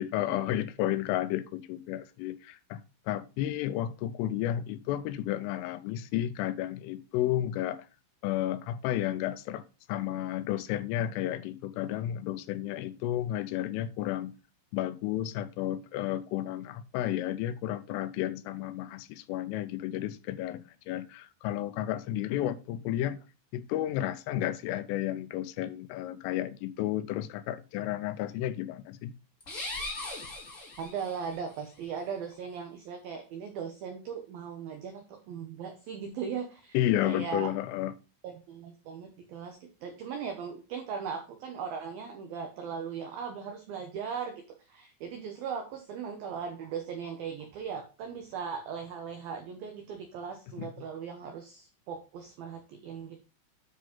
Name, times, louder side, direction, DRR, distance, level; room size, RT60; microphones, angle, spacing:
voice 1, 0.0-7.9 8.2-9.6 9.9-14.3 14.7-23.2 23.5-29.1 36.7-37.9 50.6-50.7, left 13 dB, 85° left, 3.1 m, -32 dB
sound 1, 29.4-31.4, left 2 dB, 65° left, 0.7 m, -39 dB
voice 2, 30.8-36.8 37.0-37.5 38.2-53.2, right 6 dB, 90° right, 2.0 m, -38 dB
9.9 x 5.2 x 3.8 m
omnidirectional pair, 5.8 m